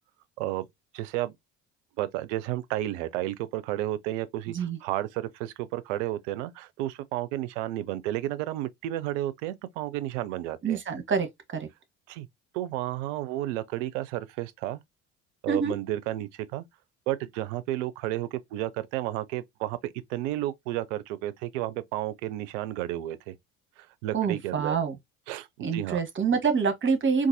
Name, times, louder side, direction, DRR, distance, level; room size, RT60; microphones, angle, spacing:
voice 1, 0.9-1.4 2.0-10.8 12.1-12.3 12.5-14.8 15.4-16.6 17.1-23.4 23.8-24.8 25.3-26.0, right 14 dB, 65° right, 0.5 m, -32 dB
voice 2, 10.6-11.3 11.5-11.7 15.5-15.7 24.1-25.0 25.6-27.3, right 5 dB, 30° right, 1.0 m, -26 dB
3.9 x 2.5 x 2.6 m
figure-of-eight pair, 55°, 39 cm